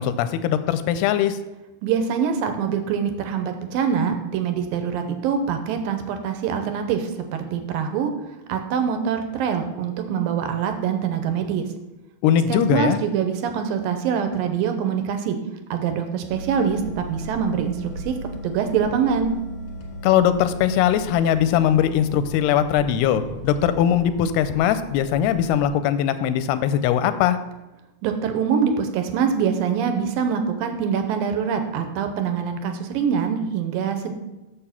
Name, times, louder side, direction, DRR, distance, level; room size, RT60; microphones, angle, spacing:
voice 1, 0.0-1.4 12.2-13.0 20.0-27.4, left 10 dB, 90° left, 12 dB, 2.6 m, -20 dB
voice 2, 1.8-8.1 8.5-11.7 12.5-15.4 15.7-18.1 18.4-19.3 28.0-34.1, right 7 dB, 80° right, 7 dB, 2.3 m, -24 dB
sound 1, 16.3-25.7, equal, 60° left, 1.3 m, -37 dB
7.0 x 6.8 x 5.8 m, 1.0 s
omnidirectional pair, 4.5 m